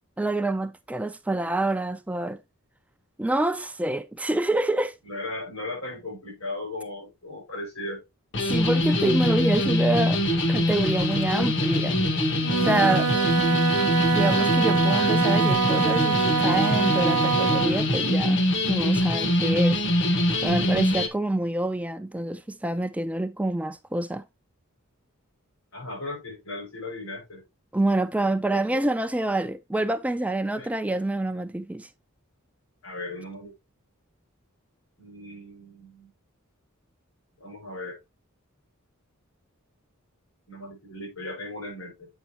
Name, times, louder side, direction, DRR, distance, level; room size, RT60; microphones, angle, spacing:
voice 1, 0.2-2.4 3.2-4.9 8.4-10.2 10.5-12.0 12.6-13.1 14.1-19.8 20.4-24.2 27.7-31.9, right 2 dB, 5° right, 0.3 m, -27 dB
voice 2, 5.0-8.0 14.9-15.4 25.7-27.4 28.5-28.8 30.5-30.7 32.8-33.5 35.0-36.1 37.4-38.0 40.5-42.1, left 2 dB, 75° left, 5.2 m, -37 dB
sound 1, 8.3-21.1, left 1 dB, 60° left, 1.1 m, -23 dB
Wind instrument woodwind instrument, 12.4-17.8, right 7 dB, 85° right, 0.4 m, -25 dB
8.1 x 5.2 x 2.8 m
head